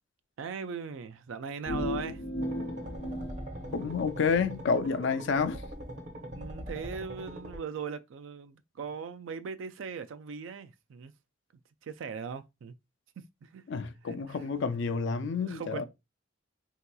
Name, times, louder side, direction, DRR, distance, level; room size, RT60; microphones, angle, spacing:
voice 1, 0.4-2.2 6.3-11.1 11.8-12.7 13.2-13.6 14.1-14.5 15.2-15.8, right 6 dB, 75° right, 0.4 m, -40 dB
sound 1, 1.7-4.5, left 1 dB, 85° left, 0.8 m, -36 dB
sound 2, 2.4-7.6, equal, 40° right, 0.7 m, -42 dB
voice 2, 3.7-5.6 13.7-15.8, left 5 dB, 65° left, 0.4 m, -29 dB
3.7 x 2.8 x 2.2 m
head